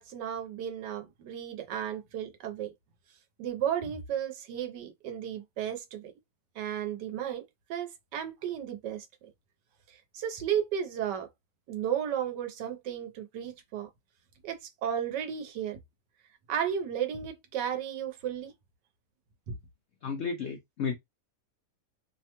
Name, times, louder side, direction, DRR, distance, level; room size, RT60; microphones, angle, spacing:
voice 1, 0.0-2.7 3.4-6.1 6.6-7.4 7.7-9.1 9.9-11.3 11.7-13.9 14.4-15.8 16.5-18.5 19.5-19.6, right 9 dB, 90° right, 1.3 m, -34 dB
voice 2, 20.0-20.9, left 6 dB, 80° left, 0.6 m, -32 dB
3.0 x 2.2 x 2.8 m
omnidirectional pair, 1.8 m